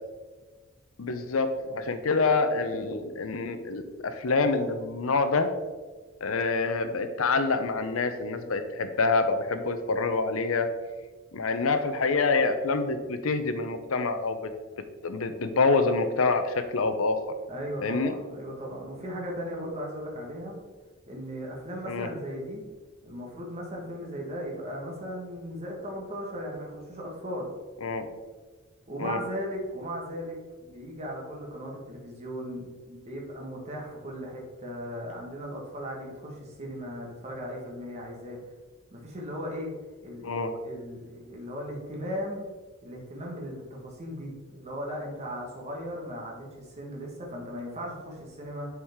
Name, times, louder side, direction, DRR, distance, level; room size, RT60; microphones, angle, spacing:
voice 1, 1.0-5.5 6.2-10.7 11.3-14.4 15.0-17.3 17.8-18.1 21.9-22.1 27.8-28.1 29.0-29.2 40.2-40.6, left 3 dB, 85° left, 9 dB, 0.7 m, -26 dB
voice 2, 17.5-20.6 21.1-22.6 23.0-27.5 28.9-38.4 38.9-39.7 40.0-40.3 40.6-42.4 42.8-48.7, equal, 30° right, -2 dB, 1.4 m, -37 dB
7.1 x 4.9 x 3.6 m, 1.4 s
head